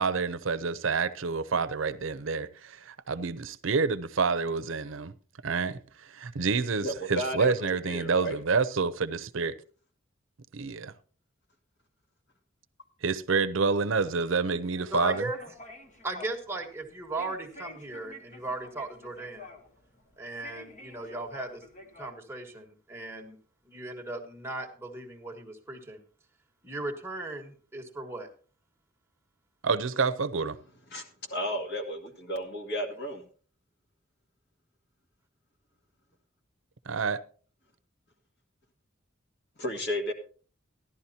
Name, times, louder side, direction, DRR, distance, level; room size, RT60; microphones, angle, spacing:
voice 1, 0.0-5.1 5.4-9.5 10.5-10.9 13.0-15.3 29.6-30.6 36.9-37.2, right 4 dB, 70° right, 0.7 m, -28 dB
voice 2, 6.8-8.3 30.9-33.2 39.6-40.1, equal, 60° left, 2.1 m, -33 dB
sound 1, 14.7-22.1, left 2 dB, 40° left, 1.5 m, -49 dB
voice 3, 14.9-15.4 16.0-19.5 20.2-21.6 22.0-23.4 23.6-26.0 26.6-28.3, right 2 dB, 15° right, 1.6 m, -37 dB
15.0 x 11.5 x 2.8 m
head